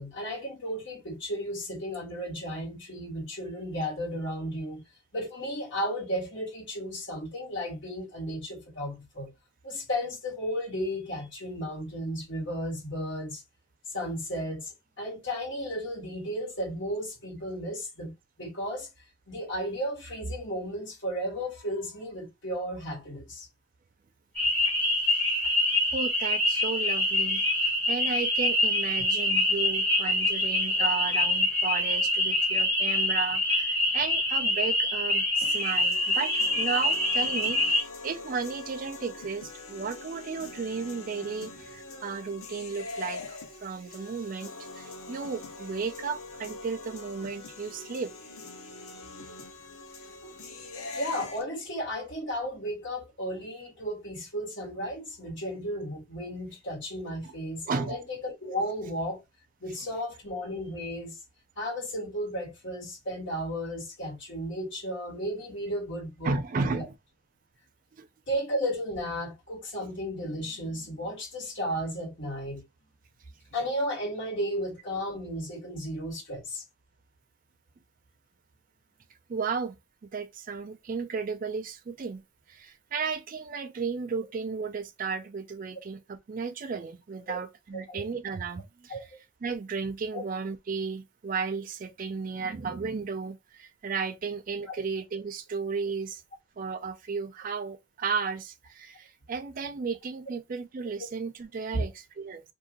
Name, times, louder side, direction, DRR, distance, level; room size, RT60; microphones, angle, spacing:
voice 1, 0.0-4.8 5.1-9.3 9.6-13.4 13.9-18.9 19.3-23.5 50.9-59.2 59.6-61.2 61.6-66.8 68.3-72.6 73.5-76.6 87.3-87.4 87.7-88.0 88.9-89.0 90.1-90.2 94.6-94.8 101.7-101.8, equal, 55° left, 1.6 m, -34 dB
sound 1, 24.3-37.8, left 1 dB, 5° left, 1.1 m, -25 dB
voice 2, 25.9-48.1 49.3-49.4 57.2-57.3 57.7-58.0 66.2-66.9 68.0-68.1 79.3-79.7 80.1-82.2 82.5-89.0 89.4-96.2 96.6-102.4, right 5 dB, 40° right, 0.3 m, -34 dB
sound 2, 35.4-51.4, left 3 dB, 85° left, 0.8 m, -43 dB
2.7 x 2.4 x 3.6 m
head